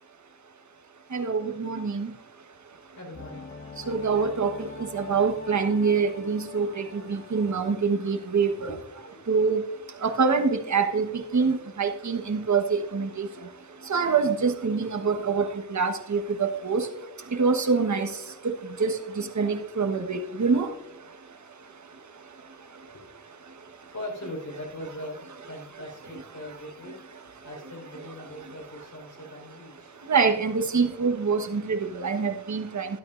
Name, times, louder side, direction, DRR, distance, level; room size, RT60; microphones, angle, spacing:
voice 1, 1.1-2.1 3.9-4.5 4.9-8.7 9.3-9.6 10.0-11.1 11.3-13.3 13.9-15.5 15.7-16.9 17.4-18.1 18.4-18.5 18.8-20.7 30.1-32.9, right 5 dB, 60° right, 5 dB, 1.4 m, -25 dB
voice 2, 3.0-3.5 8.1-9.3 22.8-23.1 23.5-30.0, left 1 dB, 65° left, 0 dB, 4.7 m, -41 dB
sound 1, 3.1-8.8 9.1-9.2, left 4 dB, 40° left, 1.4 m, -45 dB
13.0 x 12.5 x 2.6 m, 0.80 s
wide cardioid pair, 95°, 33 cm